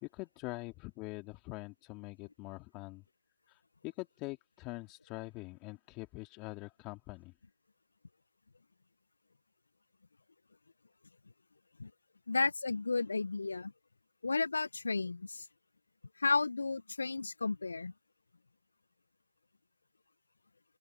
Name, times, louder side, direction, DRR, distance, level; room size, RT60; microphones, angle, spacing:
voice 1, 0.0-3.0 3.5-7.3, left 24 dB, 20° left, 1.9 m, -44 dB
voice 2, 12.3-13.7 14.2-15.4 16.2-17.9, left 3 dB, 75° left, 0.3 m, -33 dB
figure-of-eight pair, 155°, 0 cm